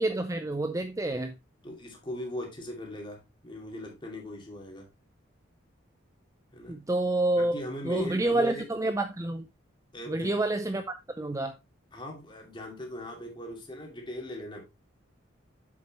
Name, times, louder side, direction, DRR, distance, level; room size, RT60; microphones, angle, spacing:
voice 1, 0.0-1.3 6.7-9.4 10.1-11.5, right 2 dB, 15° right, 0.5 m, -28 dB
voice 2, 1.6-4.9 6.5-6.8 7.4-8.7 9.9-10.4 11.9-14.6, left 1 dB, 25° left, 2.5 m, -39 dB
7.7 x 7.3 x 2.9 m
head